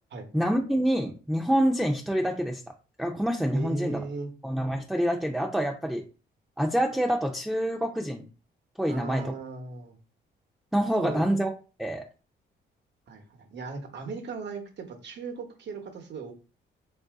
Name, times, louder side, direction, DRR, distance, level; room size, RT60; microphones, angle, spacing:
voice 1, 0.3-2.6 3.0-4.0 4.4-6.0 6.6-8.2 8.8-9.2 10.7-11.5 11.8-12.1, equal, ahead, 0 dB, 0.6 m, -26 dB
voice 2, 3.5-4.3 8.9-10.0 11.0-11.3 13.1-16.3, right 4 dB, 60° right, 5 dB, 1.1 m, -37 dB
3.6 x 2.7 x 3.5 m, 0.34 s
cardioid pair, 90°, 20 cm